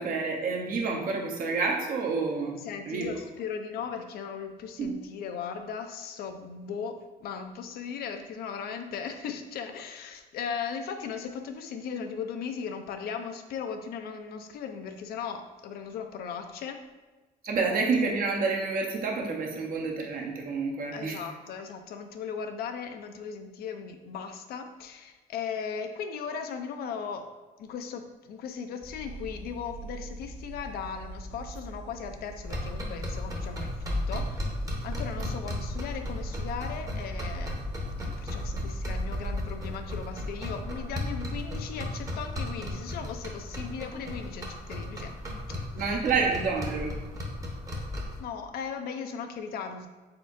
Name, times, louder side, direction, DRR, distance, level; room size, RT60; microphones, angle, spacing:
voice 1, 0.0-2.5 2.9-3.1 4.8-5.0 17.4-21.2 45.7-46.9, right 4 dB, 55° right, 1 dB, 0.8 m, -28 dB
voice 2, 2.6-16.8 20.9-27.3 27.6-34.5 34.8-37.6 38.0-45.1 45.5-45.7 48.2-49.9, left 6 dB, 65° left, 7 dB, 0.5 m, -37 dB
sound 1, 28.8-39.4, right 1 dB, 10° left, 0.5 m, -40 dB
sound 2, 32.4-48.2, left 1 dB, 20° right, 0.8 m, -35 dB
4.3 x 3.6 x 2.5 m, 1.2 s
cardioid pair, 110°, 17 cm